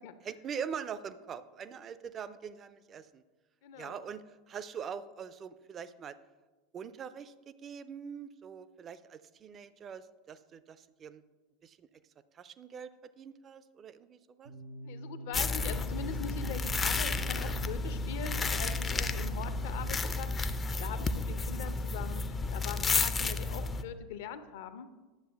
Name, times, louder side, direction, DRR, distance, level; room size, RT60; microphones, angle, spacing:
voice 1, 0.2-3.2 3.8-6.2 6.7-11.2 11.6-11.8 12.3-14.5, right 7 dB, 30° right, 14 dB, 0.5 m, -43 dB
voice 2, 3.6-4.0 14.8-24.9, left 7 dB, 60° left, 11 dB, 0.7 m, -42 dB
sound 1, 14.4-19.9, right 2 dB, 80° right, 1.6 m, -45 dB
sound 2, 15.3-23.8, left 3 dB, 20° left, 0.5 m, -32 dB
10.5 x 7.3 x 3.5 m, 1.2 s
figure-of-eight pair, 80°, 0 cm